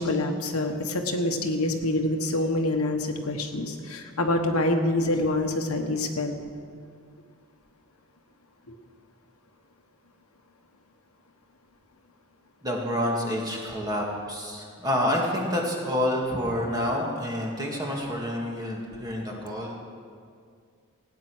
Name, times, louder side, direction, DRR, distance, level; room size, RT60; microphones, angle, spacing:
voice 1, 0.0-6.4, left 1 dB, 85° left, 4 dB, 1.4 m, -26 dB
voice 2, 12.6-19.8, left 1 dB, 20° right, -1 dB, 2.1 m, -28 dB
17.0 x 9.6 x 6.3 m, 2.1 s
head